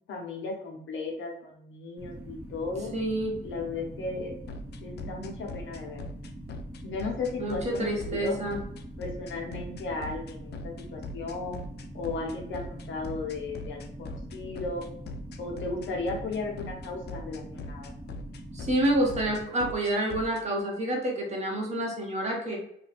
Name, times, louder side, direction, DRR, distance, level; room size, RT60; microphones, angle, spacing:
voice 1, 0.1-2.9 3.4-4.4 4.8-6.0 6.8-8.4 9.0-11.6 11.9-14.8 15.4-17.9, left 3 dB, 75° left, 0 dB, 1.0 m, -35 dB
sound 1, 2.0-19.4, right 1 dB, 10° right, 1.2 m, -43 dB
voice 2, 2.9-3.3 7.4-8.6 18.5-22.6, right 1 dB, 35° right, -1 dB, 1.2 m, -28 dB
sound 2, 4.5-20.4, left 2 dB, 55° left, 0.4 m, -41 dB
2.6 x 2.5 x 4.1 m, 0.72 s
cardioid pair, 90°, 20 cm